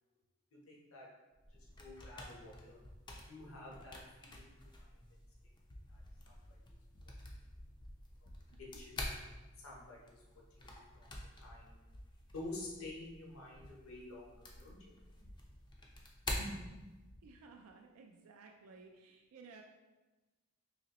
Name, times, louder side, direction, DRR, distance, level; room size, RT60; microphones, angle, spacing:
voice 1, 0.5-1.1 1.5-2.8 3.2-5.0 5.9-6.0 6.6-6.8 8.6-9.0 9.6-10.2 10.5-10.7 10.9-11.0 11.4-11.8 12.3-14.8 15.1-15.2 16.3-16.9, left 2 dB, 65° left, -3 dB, 0.8 m, -49 dB
sound 1, 1.3-17.3, left 1 dB, 20° left, 0.4 m, -48 dB
voice 2, 17.2-19.6, right 4 dB, 75° right, 2 dB, 0.3 m, -57 dB
3.9 x 2.9 x 2.9 m, 1.1 s
head